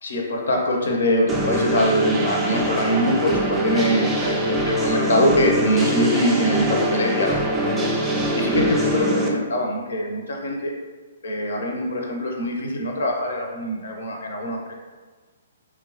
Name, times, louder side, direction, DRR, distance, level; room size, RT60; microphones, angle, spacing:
voice 1, 0.0-7.4 8.4-10.7 11.2-14.7, equal, 60° left, 1 dB, 0.4 m, -23 dB
sound 1, 1.3-9.3, equal, 10° right, 0.3 m, -23 dB
2.8 x 2.2 x 2.4 m, 1.4 s
figure-of-eight pair, 120°, 0 cm